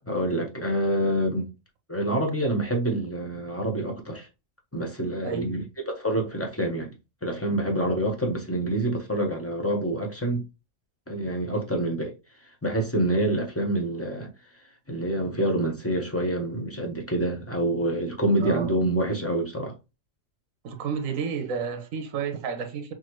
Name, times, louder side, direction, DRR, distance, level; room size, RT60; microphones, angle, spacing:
voice 1, 0.1-1.5 1.9-4.3 4.7-6.9 7.2-10.5 11.1-12.1 12.6-14.3 14.9-19.7, right 1 dB, 10° left, 0.9 m, -27 dB
voice 2, 5.2-5.6 18.4-18.8 20.6-22.9, right 6 dB, 80° right, 1.3 m, -31 dB
6.2 x 2.1 x 3.1 m
omnidirectional pair, 1.4 m